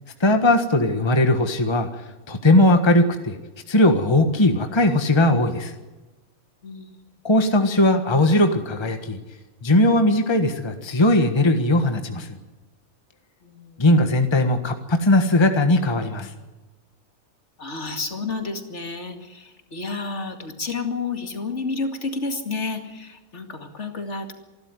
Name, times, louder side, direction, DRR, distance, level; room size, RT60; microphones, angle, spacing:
voice 1, 0.2-1.9 2.3-3.4 3.7-5.7 7.2-9.2 9.6-12.4 13.8-16.3, left 1 dB, 20° left, 6 dB, 1.4 m, -19 dB
voice 2, 6.6-7.0 13.4-14.0 17.6-24.3, left 3 dB, 55° left, 5 dB, 2.6 m, -31 dB
27.0 x 12.5 x 9.5 m, 1.1 s
omnidirectional pair, 1.5 m